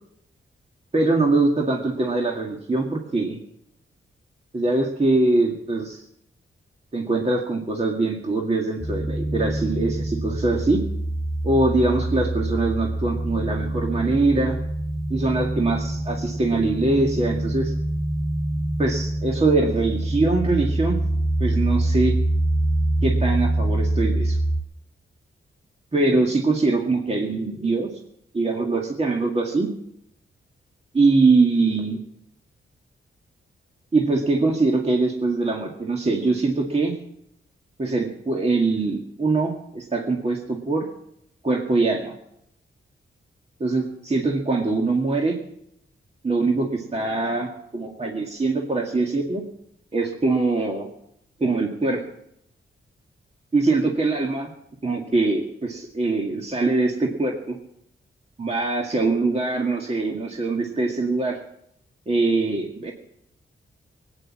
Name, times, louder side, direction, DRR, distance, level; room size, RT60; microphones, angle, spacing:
voice 1, 0.9-3.4 4.5-6.0 6.9-10.8 11.4-14.6 15.1-17.7 18.8-21.0 21.4-22.2 23.0-24.4 25.9-27.9 28.3-29.7 30.9-32.0 33.9-36.9 37.8-40.9 41.4-42.1 43.6-45.4 46.2-49.4 49.9-50.9 51.4-52.0 53.5-54.5 54.8-57.6 58.4-61.4 62.1-62.9, right 3 dB, 30° right, 0 dB, 1.9 m, -23 dB
sound 1, 8.8-24.6, right 1 dB, 5° left, 3.8 m, -25 dB
19.0 x 9.4 x 7.3 m, 0.77 s
wide cardioid pair, 100°, 21 cm